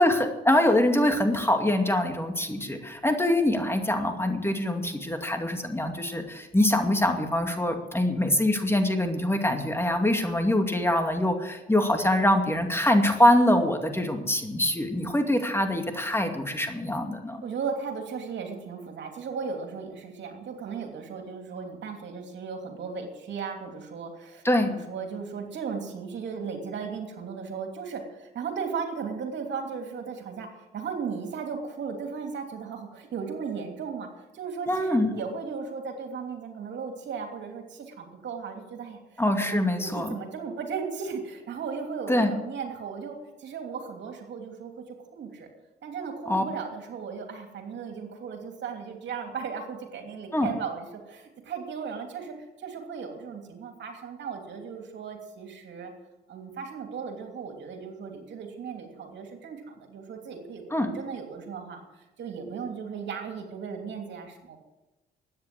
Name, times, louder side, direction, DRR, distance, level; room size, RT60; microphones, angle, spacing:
voice 1, 0.0-17.4 24.4-24.7 34.7-35.1 39.2-40.1 42.1-42.3 46.3-46.4 50.3-50.5 60.7-60.9, left 1 dB, 10° left, 5 dB, 2.4 m, -24 dB
voice 2, 17.4-45.5 45.8-55.9 56.3-64.6, right 5 dB, 65° right, 4 dB, 2.9 m, -36 dB
13.0 x 9.7 x 7.7 m, 1.1 s
supercardioid pair, 60°, 20 cm